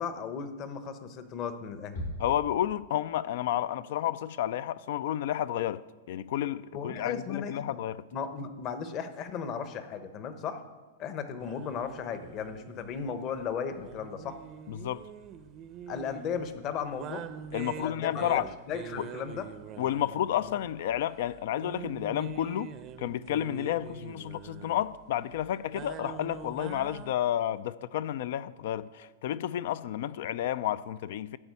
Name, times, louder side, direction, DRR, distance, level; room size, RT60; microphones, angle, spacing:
voice 1, 0.0-2.1 6.7-7.8 8.1-10.6 11.0-14.4 15.9-17.2 17.8-19.5, left 6 dB, 40° left, 0.9 m, -36 dB
sound 1, 1.9-3.3, left 1 dB, 90° left, 3.5 m, -40 dB
voice 2, 2.2-8.0 14.7-15.0 17.5-18.4 19.0-19.1 19.8-22.7 23.0-31.4, left 11 dB, 65° left, 0.4 m, -31 dB
sound 2, 11.4-27.1, right 8 dB, 35° right, 0.6 m, -45 dB
12.0 x 4.4 x 8.3 m
hypercardioid pair, 130°, 0 cm